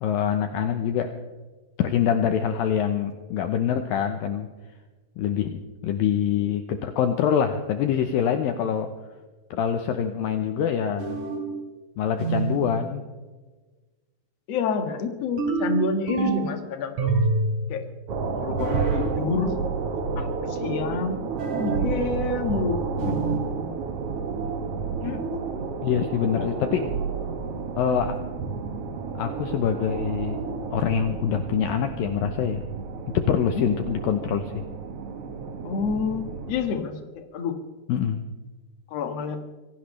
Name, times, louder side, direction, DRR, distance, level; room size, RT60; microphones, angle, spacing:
voice 1, 0.0-1.1 1.8-4.5 5.2-8.9 9.5-11.2 12.0-13.0 25.8-26.9 27.8-28.2 29.2-30.4 30.7-32.6 33.1-34.5 37.9-38.2, left 8 dB, 75° left, 7 dB, 2.3 m, -25 dB
sound 1, 11.0-11.5 12.2-12.7 15.4-16.6 17.0-17.6 18.6-19.1 21.4-21.9 23.0-23.5, right 4 dB, 50° right, 4.5 m, -26 dB
voice 2, 14.5-17.1 17.7-17.8 18.3-19.6 20.2-20.3 20.6-21.2 21.6-22.8 23.1-23.2 25.0-25.2 26.2-26.5 33.5-33.6 35.6-37.5 38.9-39.4, left 5 dB, 50° left, 6 dB, 2.1 m, -28 dB
sound 2, 18.1-36.7, right 4 dB, 80° right, 1.3 m, -31 dB
25.5 x 17.0 x 3.3 m, 1.3 s
omnidirectional pair, 4.8 m